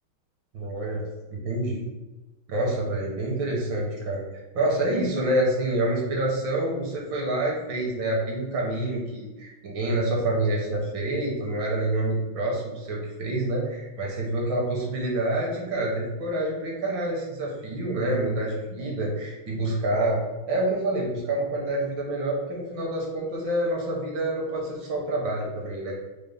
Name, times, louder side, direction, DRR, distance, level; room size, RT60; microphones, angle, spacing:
voice 1, 0.5-1.0 1.3-1.8 2.5-4.3 4.5-20.2 20.5-26.0, right 1 dB, 70° right, -2 dB, 1.6 m, -27 dB
5.2 x 2.1 x 3.4 m, 1.1 s
omnidirectional pair, 2.2 m